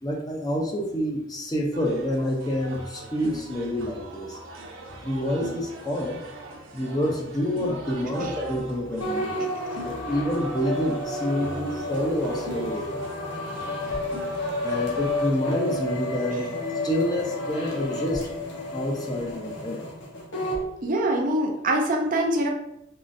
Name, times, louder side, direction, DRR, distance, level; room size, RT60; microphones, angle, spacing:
voice 1, 0.0-4.4 5.0-6.2 6.7-9.5 9.8-13.0 14.6-16.5 16.8-18.3 18.7-19.8, equal, 20° left, 0 dB, 0.5 m, -28 dB
sound 1, 1.7-15.3, right 2 dB, 80° right, 0.7 m, -41 dB
sound 2, 9.0-20.6, left 1 dB, 70° left, 1.0 m, -31 dB
voice 2, 20.8-22.5, right 1 dB, 45° right, 1 dB, 0.5 m, -24 dB
3.8 x 3.0 x 2.5 m, 0.81 s
head